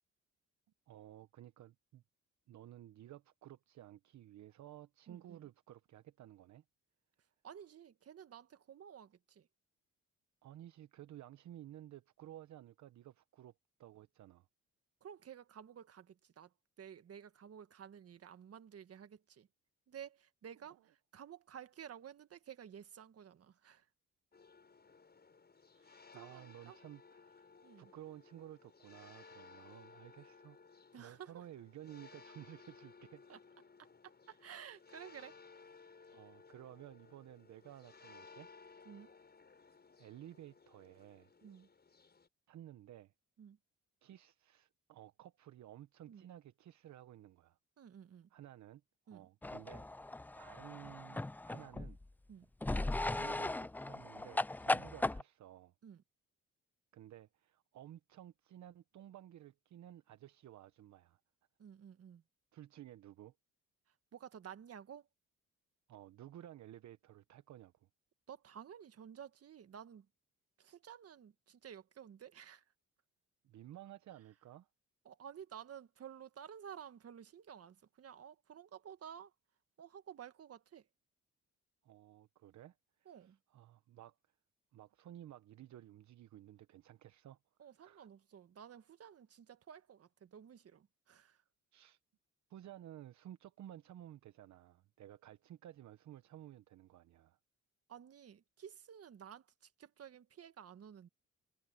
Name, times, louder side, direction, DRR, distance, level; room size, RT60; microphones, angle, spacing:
voice 1, 0.9-2.0 2.5-6.6 10.4-13.5 13.8-14.5 26.1-30.6 31.0-33.2 36.1-38.5 40.0-41.3 42.5-43.1 44.0-47.6 48.3-48.8 49.1-52.0 53.1-55.7 56.9-61.2 62.5-63.3 65.9-67.9 73.4-74.7 81.8-84.3 84.7-87.4 87.8-88.1 91.7-92.0 92.5-97.4, right 12 dB, 70° right, 1.0 m, -55 dB
voice 2, 5.1-5.5 7.4-9.5 15.0-19.5 19.9-23.9 25.8-26.8 27.6-27.9 30.9-31.4 33.3-33.4 34.0-35.4 38.9-39.1 41.4-41.7 43.4-43.6 46.1-46.3 47.8-48.3 49.1-49.3 52.3-52.5 54.7-54.9 55.8-56.0 61.6-62.2 63.9-65.1 68.3-70.1 70.6-72.7 75.1-79.3 79.8-80.9 83.1-83.4 87.6-91.4 97.9-101.1, right 8 dB, 50° right, 1.6 m, -53 dB
sound 1, 24.3-42.3, left 4 dB, 35° left, 7.8 m, -60 dB
sound 2, 49.4-52.0 52.6-55.2, left 2 dB, 5° left, 0.3 m, -37 dB
cardioid pair, 90°, 30 cm